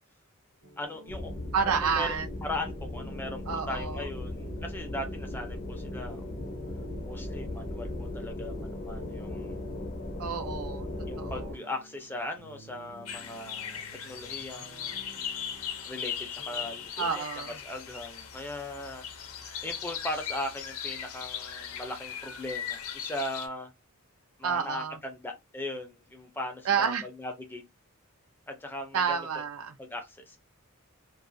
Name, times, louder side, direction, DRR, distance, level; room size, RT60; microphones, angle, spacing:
sound 1, 0.6-16.9, right 1 dB, 65° right, 1.2 m, -53 dB
voice 1, 0.8-1.3 1.6-6.3 7.0-9.6 11.1-15.0 15.8-19.0 19.6-23.7 24.4-27.6 28.5-29.3 29.8-30.4, left 1 dB, 10° left, 0.5 m, -39 dB
sound 2, 1.1-11.5, left 1 dB, 50° left, 0.7 m, -37 dB
voice 2, 1.5-2.3 3.5-4.1 10.2-10.9 11.2-11.5 17.0-17.6 24.4-25.0 26.6-27.0 28.9-29.7, right 6 dB, 90° right, 0.5 m, -29 dB
sound 3, 13.1-23.5, left 8 dB, 90° left, 0.6 m, -38 dB
2.4 x 2.3 x 2.5 m
head